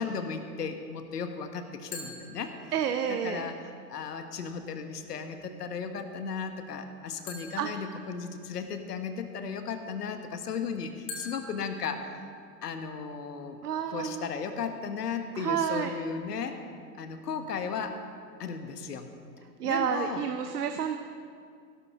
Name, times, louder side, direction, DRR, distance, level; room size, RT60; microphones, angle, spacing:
voice 1, 0.0-2.7 3.1-12.3 12.6-13.6 13.9-16.6 17.0-18.0 18.4-19.1 19.6-20.2, left 5 dB, 70° left, 7 dB, 1.4 m, -35 dB
sound 1, 1.9-3.2 7.3-8.8 11.1-12.8, left 3 dB, 10° left, 0.3 m, -46 dB
voice 2, 2.7-3.4 7.6-7.7 13.6-14.3 15.4-15.9 19.6-21.0, right 8 dB, 65° right, 7 dB, 0.9 m, -29 dB
17.0 x 11.5 x 3.7 m, 2.3 s
hypercardioid pair, 115°, 50 cm